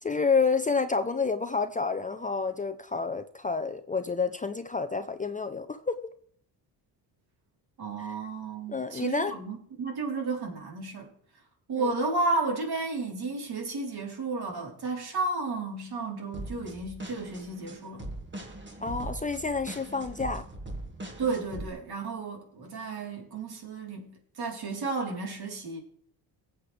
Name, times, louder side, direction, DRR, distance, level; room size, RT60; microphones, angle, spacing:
voice 1, 0.0-6.0 8.0-8.2 8.7-9.4 11.7-11.9 18.8-20.4, left 4 dB, 20° left, 0.6 m, -29 dB
voice 2, 7.8-11.1 11.7-18.1 21.2-25.8, right 3 dB, 60° right, 4.0 m, -32 dB
sound 1, 16.3-21.7, right 1 dB, 25° right, 2.3 m, -40 dB
19.5 x 8.0 x 3.4 m
cardioid pair, 100°, 44 cm